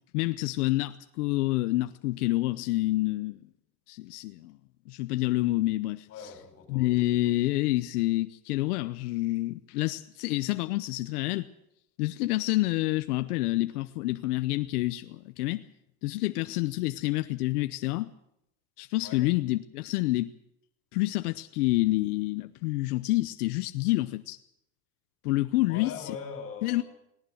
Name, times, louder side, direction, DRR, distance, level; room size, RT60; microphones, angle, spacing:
voice 1, 0.1-3.4 3.9-4.6 4.9-6.1 6.7-11.5 12.0-15.6 16.0-18.1 18.8-20.3 20.9-24.4 25.2-26.2 26.6-26.8, left 18 dB, 85° left, 0.9 m, -28 dB
voice 2, 6.1-7.3 19.0-19.2 25.7-26.8, left 6 dB, 30° left, 5.7 m, -42 dB
18.5 x 18.5 x 7.9 m
supercardioid pair, 165°, 44 cm